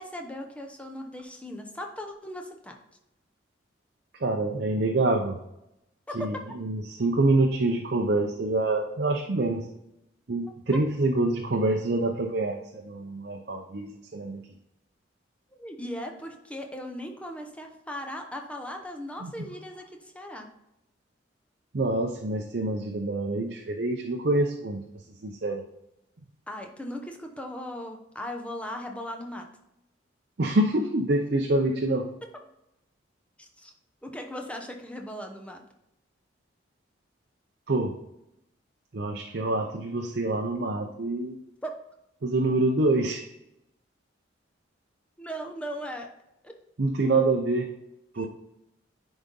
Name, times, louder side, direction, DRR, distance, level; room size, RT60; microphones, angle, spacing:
voice 1, 0.0-2.8 6.1-6.4 10.7-10.8 15.5-20.5 26.5-29.5 32.2-32.3 33.4-33.7 34.0-35.6 41.6-41.7 45.2-46.1 46.4-46.5 48.1-48.3, equal, 5° left, 3 dB, 0.8 m, -38 dB
voice 2, 4.2-5.4 6.1-9.7 10.3-14.4 19.2-19.5 21.7-24.8 25.2-25.6 30.4-32.1 37.7-37.9 38.9-41.4 42.2-43.2 46.8-47.7 48.1-48.3, right 2 dB, 55° right, 2 dB, 0.6 m, -26 dB
10.0 x 4.0 x 3.7 m, 0.85 s
head